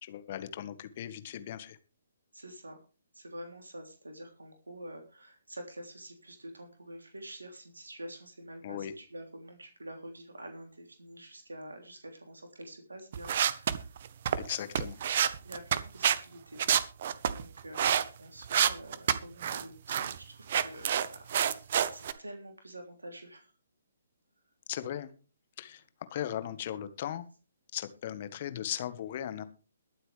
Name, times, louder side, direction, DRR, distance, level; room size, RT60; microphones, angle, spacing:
voice 1, 0.0-1.8 8.6-8.9 14.4-15.0 24.7-25.1 25.6-25.8 26.1-27.3 27.7-29.4, left 11 dB, 40° left, 12 dB, 1.5 m, -37 dB
voice 2, 2.3-2.8 3.1-14.0 15.4-16.6 17.3-23.5, right 1 dB, 80° right, 4 dB, 3.2 m, -47 dB
sound 1, 13.1-16.2 16.6-18.0 18.4-19.6 19.9-20.2 20.5-22.1, right 9 dB, 45° right, 1.1 m, -27 dB
22.0 x 7.9 x 3.4 m, 0.34 s
figure-of-eight pair, 135°, 0 cm